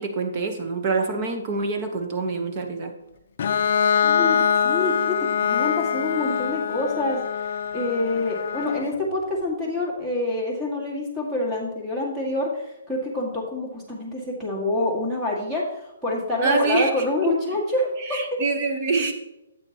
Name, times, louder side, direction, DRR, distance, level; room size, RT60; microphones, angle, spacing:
voice 1, 0.0-2.9 16.4-16.9 17.2-17.3 18.0-19.1, right 4 dB, 25° right, 4 dB, 1.1 m, -25 dB
Bowed string instrument, 3.4-9.0, left 7 dB, 50° left, 0.5 m, -24 dB
voice 2, 4.0-4.4 4.6-7.2 7.7-18.4, left 2 dB, 10° right, -3 dB, 1.9 m, -27 dB
8.8 x 8.4 x 2.9 m, 0.89 s
hypercardioid pair, 170°, 0 cm